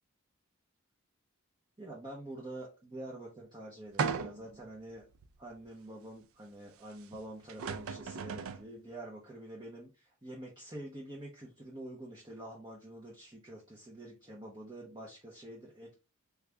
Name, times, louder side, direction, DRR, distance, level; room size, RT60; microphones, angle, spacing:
voice 1, 1.8-5.1 5.4-16.0, right 1 dB, 20° right, -3 dB, 0.7 m, -47 dB
sound 1, 4.0-4.6 5.2-5.3 7.1-7.2 7.5-8.7, right 5 dB, 70° right, 0.4 m, -36 dB
3.5 x 2.4 x 3.2 m, 0.30 s
head